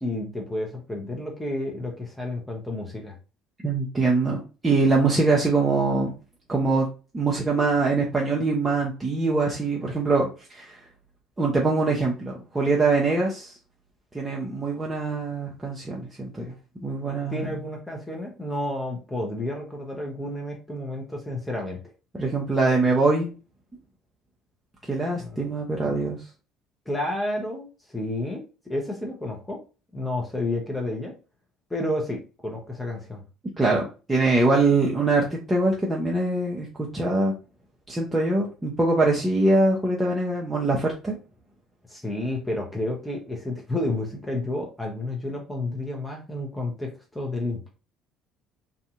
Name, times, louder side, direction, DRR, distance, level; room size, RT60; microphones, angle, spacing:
voice 1, 0.0-3.1 17.3-21.8 25.2-25.6 26.9-29.6 29.9-31.1 31.7-33.2 41.9-47.7, left 1 dB, 10° left, 0 dB, 0.8 m, -31 dB
voice 2, 3.6-6.1 6.5-6.9 7.1-10.8 11.4-13.5 14.1-16.5 16.8-17.5 22.2-23.3 24.9-26.2 33.6-37.3 37.9-41.2, right 3 dB, 15° right, -3 dB, 0.6 m, -23 dB
2.6 x 2.4 x 2.4 m, 0.33 s
hypercardioid pair, 60°, 0 cm